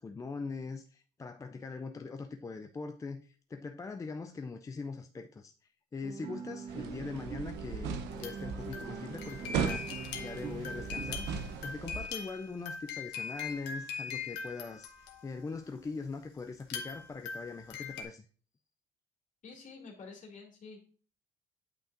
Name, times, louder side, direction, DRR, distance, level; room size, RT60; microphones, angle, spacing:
voice 1, 0.0-5.5 5.9-18.3, left 4 dB, 20° left, 0.4 m, -42 dB
Guitar, 6.0-11.1, right 6 dB, 35° right, 0.5 m, -44 dB
sound 1, 6.7-12.1, right 6 dB, 85° right, 0.7 m, -38 dB
sound 2, 7.9-15.5 16.6-18.0, left 6 dB, 90° left, 1.2 m, -41 dB
voice 2, 19.4-20.8, left 4 dB, 50° left, 2.4 m, -49 dB
9.0 x 5.5 x 2.5 m
cardioid pair, 110°, 17 cm